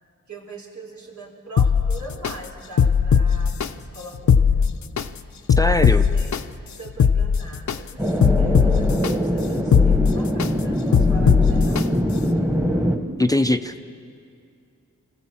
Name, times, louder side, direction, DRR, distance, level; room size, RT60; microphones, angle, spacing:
voice 1, 0.3-4.7 5.7-6.4 6.7-11.9, right 2 dB, 70° right, -1 dB, 3.6 m, -41 dB
sound 1, 1.6-2.3 2.8-3.7 4.1-5.1 5.5-6.4 6.9-7.8 8.2-9.1 9.6-10.5 10.9-11.8 12.3-12.4, left 6 dB, 70° left, 0.7 m, -18 dB
voice 2, 5.6-6.1 13.2-13.8, left 1 dB, 10° left, 9 dB, 0.6 m, -21 dB
sound 2, 8.0-13.0, equal, 10° right, 1.5 m, -23 dB
24.5 x 15.5 x 7.3 m, 2.5 s
wide cardioid pair, 80°, 30 cm